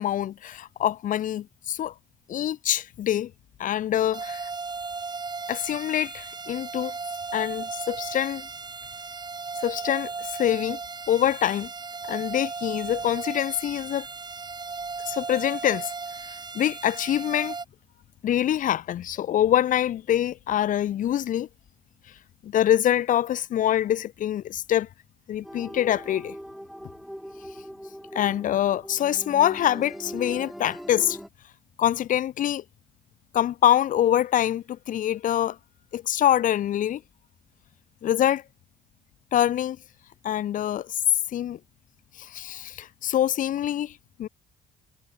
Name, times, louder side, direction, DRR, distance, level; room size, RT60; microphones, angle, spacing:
voice 1, 0.0-1.9 2.3-3.3 3.6-4.4 5.5-6.9 7.3-8.5 9.6-10.8 11.1-11.7 12.1-14.1 15.1-15.9 16.5-17.6 18.2-21.5 22.4-24.9 25.3-26.4 28.1-31.2 31.8-32.6 33.3-35.6 35.9-37.0 38.0-38.4 39.3-39.8 40.2-41.0 41.3-41.6 42.2-44.3, left 11 dB, 50° left, 0.8 m, -25 dB
sound 1, 4.1-17.6, right 4 dB, 25° right, 5.1 m, -36 dB
sound 2, 25.4-31.3, equal, ahead, 3.6 m, -40 dB
cardioid pair, 110°, 17 cm